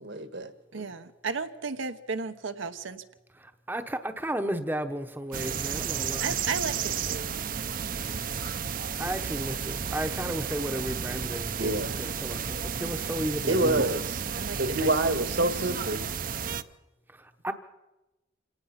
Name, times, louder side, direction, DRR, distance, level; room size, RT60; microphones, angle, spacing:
voice 1, 0.0-0.9 11.6-11.9 13.4-14.1 14.6-16.0, right 2 dB, 65° right, 10 dB, 1.6 m, -27 dB
voice 2, 0.7-3.0 5.3-5.9 6.2-7.5 13.5-13.9 14.4-15.0, right 4 dB, 85° right, 8 dB, 1.1 m, -35 dB
voice 3, 3.4-6.4 9.0-11.7 12.0-13.8 17.1-17.5, right 1 dB, 10° right, 7 dB, 0.9 m, -34 dB
sound 1, 5.3-16.6, right 7 dB, 45° right, 0.7 m, -32 dB
27.0 x 18.0 x 5.8 m, 1.0 s
head